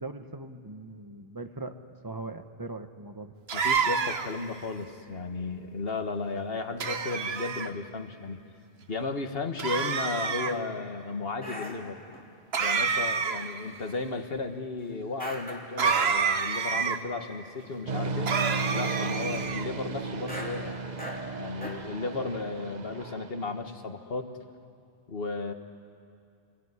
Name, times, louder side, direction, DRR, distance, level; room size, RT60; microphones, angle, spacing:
voice 1, 0.0-1.7 2.0-3.3, right 2 dB, 20° right, 8 dB, 1.1 m, -40 dB
voice 2, 3.5-8.4 8.9-12.0 12.6-18.3 18.7-20.8 21.4-24.3 25.1-25.5, left 3 dB, 65° left, 6 dB, 1.7 m, -34 dB
sound 1, 3.5-4.4 6.8-7.7 9.6-10.5 12.5-13.6 15.8-17.0 18.3-19.7, right 6 dB, 75° right, 1.2 m, -28 dB
sound 2, 8.9-9.0 9.6-10.1 10.5-10.9 11.4-12.3 13.2-14.0 14.3-14.4 15.2-16.3 16.7-16.8 17.1-17.3 17.6-18.0 18.3-18.5 20.2-22.2 22.5-22.6, equal, 10° left, 2.8 m, -42 dB
sound 3, 17.9-23.7, right 3 dB, 45° right, 1.0 m, -34 dB
28.0 x 21.0 x 9.8 m, 2.4 s
omnidirectional pair, 1.1 m